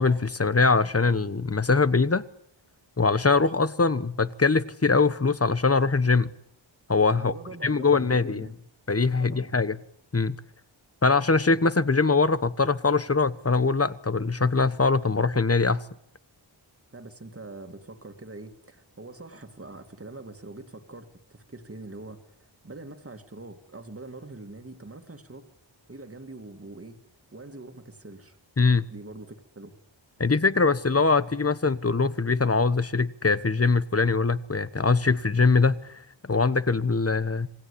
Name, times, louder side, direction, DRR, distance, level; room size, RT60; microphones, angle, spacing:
voice 1, 0.0-2.2 3.0-6.3 6.9-7.3 7.6-8.5 8.9-9.8 10.1-10.3 11.0-15.8 28.6-28.8 30.2-36.0 36.3-37.5, left 4 dB, 30° left, 1.2 m, -22 dB
voice 2, 7.2-8.5 9.2-9.5 16.9-25.5 25.9-27.0 27.3-28.4 28.9-29.7, right 2 dB, 30° right, 2.4 m, -43 dB
27.0 x 19.0 x 8.7 m
wide cardioid pair, 90°, 47 cm